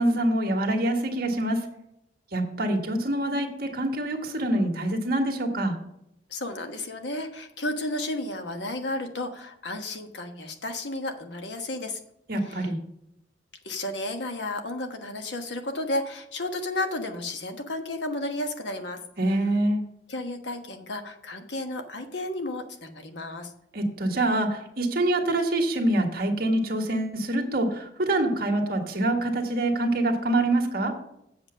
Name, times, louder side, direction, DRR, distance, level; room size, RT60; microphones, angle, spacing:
voice 1, 0.0-1.6 2.3-5.7 12.3-12.8 19.2-19.8 23.7-30.9, right 1 dB, 55° right, 2 dB, 1.6 m, -25 dB
voice 2, 6.3-12.0 12.4-12.7 13.6-19.0 19.3-19.4 20.1-23.5, left 2 dB, 75° left, 6 dB, 1.3 m, -33 dB
7.9 x 7.0 x 5.6 m, 0.78 s
head